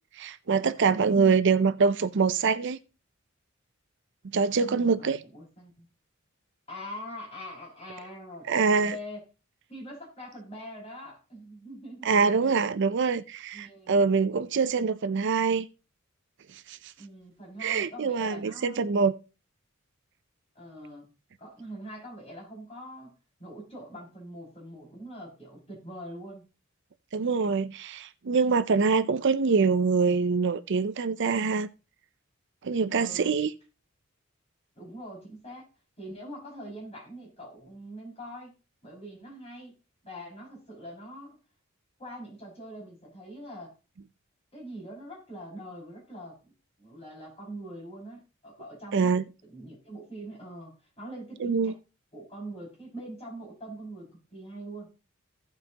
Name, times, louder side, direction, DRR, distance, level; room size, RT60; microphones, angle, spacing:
voice 1, 0.2-2.8 4.3-5.2 8.5-8.9 12.0-15.7 16.7-16.8 17.6-19.1 27.1-31.7 32.6-33.5 48.9-49.2 51.4-51.7, right 5 dB, 60° right, 0.5 m, -24 dB
voice 2, 1.0-1.4 4.6-5.9 6.7-9.2 9.7-12.1 12.4-12.6 13.5-14.0 17.0-18.9 20.6-21.1 21.4-23.1 23.4-26.4 33.0-33.4 34.8-35.7 36.0-38.5 38.8-39.8 40.0-41.4 42.0-43.7 44.5-46.5 46.8-49.1 49.5-51.7 52.1-54.9, equal, 30° left, 5.5 m, -43 dB
16.5 x 5.6 x 2.8 m
head